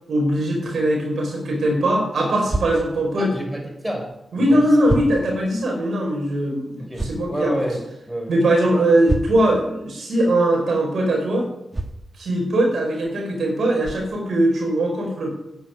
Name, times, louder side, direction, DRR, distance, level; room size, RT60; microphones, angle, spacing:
voice 1, 0.1-3.3 4.3-7.5 8.3-11.5 12.2-15.3, right 1 dB, 70° right, 1 dB, 5.0 m, -20 dB
sound 1, 2.5-2.7 4.1-4.2 4.8-5.1 6.9-7.2 9.0-9.5 11.7-12.0 13.1-13.2 13.8-14.0, right 2 dB, 30° right, 1.7 m, -26 dB
voice 2, 3.2-4.8 6.8-8.3, right 1 dB, 10° right, 2 dB, 5.0 m, -29 dB
10.5 x 10.0 x 9.5 m, 0.87 s
supercardioid pair, 40°, 0 cm